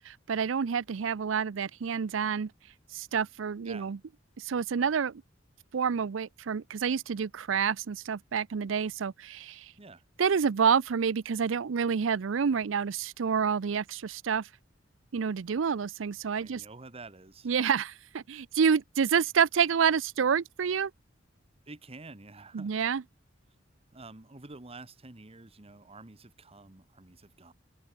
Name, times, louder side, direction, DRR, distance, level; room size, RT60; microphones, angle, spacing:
voice 1, 0.1-2.5 2.9-4.0 4.4-5.2 5.7-9.7 10.2-14.5 15.1-16.6 17.4-20.9 22.5-23.0, right 6 dB, 80° right, 0.5 m, -28 dB
voice 2, 16.2-17.5 21.7-22.7 23.9-27.5, right 3 dB, 30° right, 1.3 m, -49 dB
head